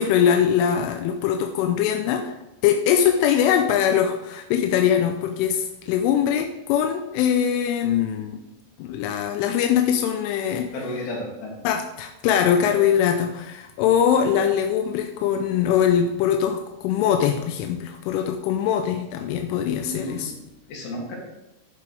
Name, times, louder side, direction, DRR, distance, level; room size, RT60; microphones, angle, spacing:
voice 1, 0.0-2.3 2.6-8.4 8.8-10.7 11.6-20.3, left 9 dB, 90° left, 5 dB, 3.2 m, -22 dB
voice 2, 10.7-11.6 19.9-20.4 20.7-21.2, left 1 dB, 60° left, -3 dB, 4.7 m, -32 dB
11.0 x 10.5 x 3.5 m, 0.94 s
omnidirectional pair, 5.7 m